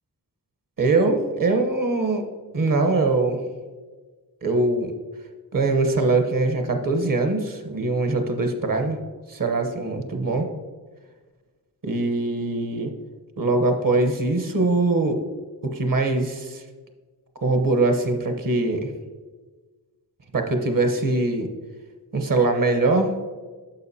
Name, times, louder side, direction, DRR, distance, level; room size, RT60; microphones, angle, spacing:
voice 1, 0.8-2.3 2.5-3.4 4.4-4.9 5.5-9.0 9.3-10.5 11.8-12.9 13.4-15.2 15.6-16.6 17.4-18.9 20.3-21.5 22.1-23.1, right 2 dB, 55° right, 6 dB, 1.1 m, -22 dB
9.5 x 6.6 x 2.8 m, 1.4 s
cardioid pair, 45°, 40 cm